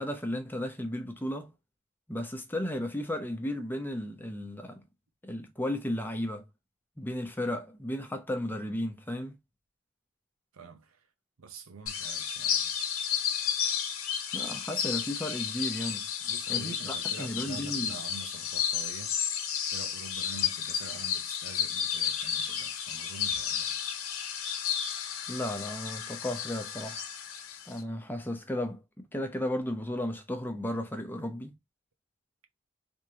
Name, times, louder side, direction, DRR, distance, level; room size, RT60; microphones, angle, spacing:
voice 1, 0.0-1.5 2.1-4.8 5.2-6.5 7.0-9.4 14.3-16.0 16.5-18.0 25.3-27.0 27.7-28.8 29.1-31.5, left 1 dB, 10° left, 0.7 m, -34 dB
voice 2, 10.5-11.1 11.4-12.7 16.2-19.2 19.7-23.8, right 4 dB, 85° right, 0.7 m, -46 dB
sound 1, 11.9-27.8, left 8 dB, 85° left, 0.7 m, -32 dB
3.5 x 3.0 x 2.8 m
head